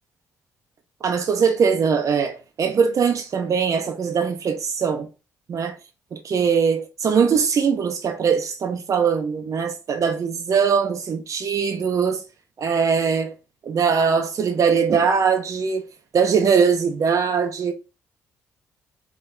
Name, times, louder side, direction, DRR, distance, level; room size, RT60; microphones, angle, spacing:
voice 1, 1.0-5.1 5.5-5.8 6.1-12.2 12.6-13.3 13.6-15.9 16.1-17.7, right 6 dB, 50° right, 0.7 m, -21 dB
3.6 x 3.2 x 3.9 m
hypercardioid pair, 50°, 7 cm